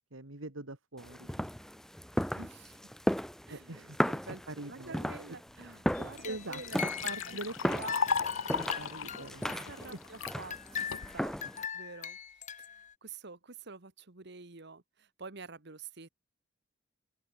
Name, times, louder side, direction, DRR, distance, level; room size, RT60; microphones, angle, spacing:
voice 1, 0.1-1.5 3.5-4.0 4.5-5.0 6.2-6.6 7.0-7.8 8.5-9.6 11.4-11.5, right 2 dB, 80° right, 2.5 m, -43 dB
sound 1, 1.0-11.7, equal, ahead, 1.0 m, -36 dB
voice 2, 2.3-2.9 3.5-6.9 7.3-8.0 8.3-8.8 9.4-11.3 11.7-16.1, right 4 dB, 60° right, 1.7 m, -48 dB
Liquid, 5.9-6.0 6.3-10.4 10.9-11.4, left 6 dB, 75° left, 0.9 m, -35 dB
sound 2, 5.9-7.4 7.8-9.9 10.3-12.9, left 7 dB, 40° left, 2.2 m, -41 dB
open air
head